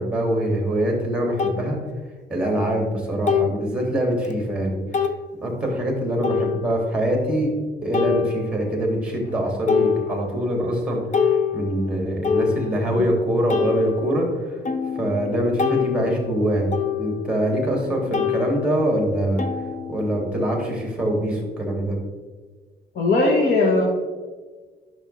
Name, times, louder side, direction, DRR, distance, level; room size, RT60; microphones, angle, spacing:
voice 1, 0.0-1.8 2.3-4.8 5.4-7.5 7.8-14.6 15.0-16.7 17.0-19.4 19.9-22.0, right 1 dB, 5° right, 0 dB, 2.4 m, -24 dB
sound 1, 0.5-0.6 1.4-1.6 3.3-3.7 4.2-4.3 4.9-5.2 6.2-6.9 7.9-8.8 9.2-9.4 9.7-10.5 10.9-13.0 13.5-17.8 18.1-20.4, left 7 dB, 45° left, 0.7 m, -26 dB
voice 2, 22.9-23.8, left 2 dB, 65° left, -1 dB, 1.4 m, -18 dB
10.5 x 6.2 x 3.3 m, 1.4 s
cardioid pair, 120°, 18 cm